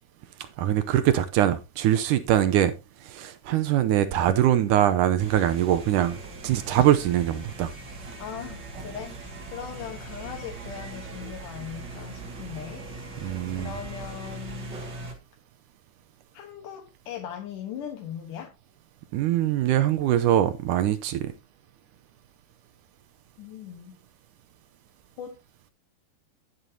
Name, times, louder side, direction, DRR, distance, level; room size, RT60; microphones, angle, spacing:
voice 1, 0.6-2.7 3.1-6.2 6.4-7.7 13.2-13.7 19.1-21.3, right 11 dB, 80° right, 1.9 m, -23 dB
sound 1, 5.2-15.1, right 2 dB, 35° right, 2.1 m, -40 dB
voice 2, 8.2-13.1 13.6-14.8 16.3-18.5 23.4-24.0 25.2-25.4, left 9 dB, 65° left, 2.6 m, -39 dB
11.5 x 11.0 x 2.8 m
omnidirectional pair, 4.4 m